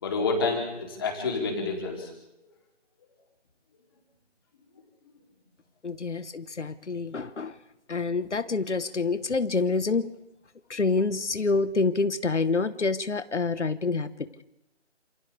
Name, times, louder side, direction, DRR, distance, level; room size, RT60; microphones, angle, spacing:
voice 1, 0.0-2.1, left 3 dB, 20° left, 1 dB, 3.2 m, -28 dB
voice 2, 5.8-7.6 7.9-10.1 10.7-14.4, left 4 dB, 70° left, 13 dB, 1.3 m, -27 dB
29.5 x 28.0 x 3.4 m, 0.86 s
figure-of-eight pair, 170°, 36 cm